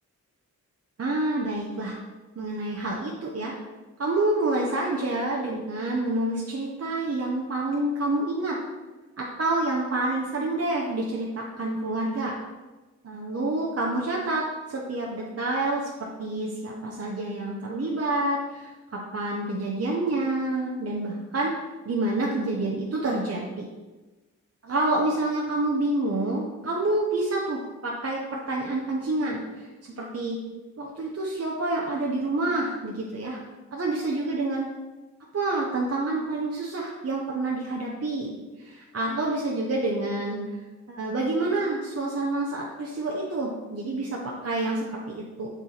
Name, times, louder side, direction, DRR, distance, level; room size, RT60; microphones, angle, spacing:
voice 1, 1.0-2.0 2.4-3.6 4.0-8.6 9.2-12.3 13.0-15.9 16.2-21.5 21.8-23.7 24.6-30.4 30.8-33.4 33.7-34.7 35.3-40.4 40.9-45.5, right 2 dB, 45° right, -3 dB, 1.0 m, -28 dB
6.1 x 4.2 x 4.0 m, 1.2 s
cardioid pair, 45°, 33 cm